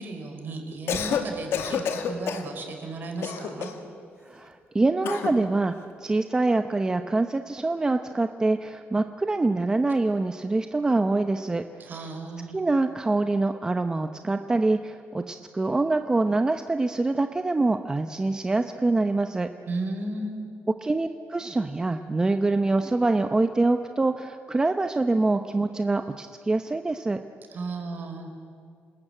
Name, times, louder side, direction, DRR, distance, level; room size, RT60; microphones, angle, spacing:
voice 1, 0.0-3.7 11.8-12.6 19.7-20.5 27.5-28.3, right 2 dB, 50° right, 4 dB, 4.6 m, -34 dB
Cough, 0.7-1.3 1.5-2.5 3.2-3.9 5.0-5.4, left 7 dB, 85° left, 2.1 m, -29 dB
voice 2, 4.3-5.7 6.0-11.6 12.5-19.5 20.8-27.2, right 2 dB, 15° right, 7 dB, 0.8 m, -25 dB
27.5 x 20.5 x 8.9 m, 2.3 s
cardioid pair, 140°, 4 cm